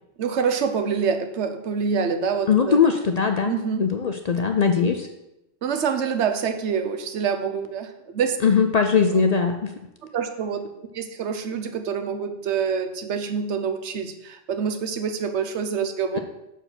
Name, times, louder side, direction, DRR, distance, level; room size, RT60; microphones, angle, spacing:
voice 1, 0.2-2.8 3.4-3.9 5.6-8.4 10.1-10.7 10.9-16.2, right 6 dB, 85° right, 8 dB, 1.1 m, -26 dB
voice 2, 2.5-3.5 3.8-5.1 8.4-9.7 16.1-16.2, left 6 dB, 55° left, 6 dB, 0.5 m, -20 dB
6.6 x 4.6 x 6.0 m, 0.91 s
omnidirectional pair, 1.1 m